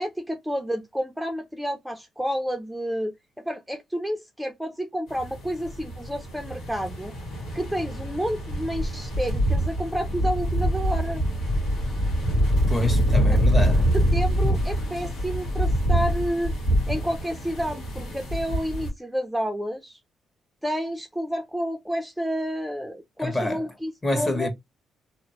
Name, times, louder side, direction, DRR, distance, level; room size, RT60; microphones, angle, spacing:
voice 1, 0.0-3.2 3.4-7.1 7.5-11.2 13.3-13.4 13.9-16.5 16.9-20.0 20.6-24.5, equal, 5° right, 0.5 m, -30 dB
sound 1, 5.2-18.9, equal, 75° left, 1.3 m, -25 dB
voice 2, 12.7-13.9 23.2-23.6 24.0-24.5, left 1 dB, 30° left, 1.4 m, -27 dB
2.8 x 2.1 x 3.0 m
supercardioid pair, 55°, 0 cm